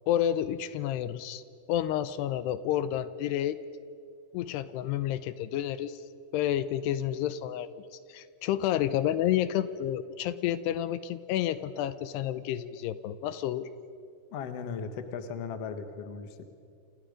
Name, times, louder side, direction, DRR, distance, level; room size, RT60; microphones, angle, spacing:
voice 1, 0.1-1.4 1.7-3.6 4.3-6.0 6.3-7.7 8.1-13.7, left 11 dB, 80° left, 14 dB, 2.8 m, -30 dB
voice 2, 14.3-16.4, left 6 dB, 60° left, 8 dB, 1.7 m, -37 dB
29.0 x 27.5 x 5.2 m, 2.4 s
omnidirectional pair, 4.9 m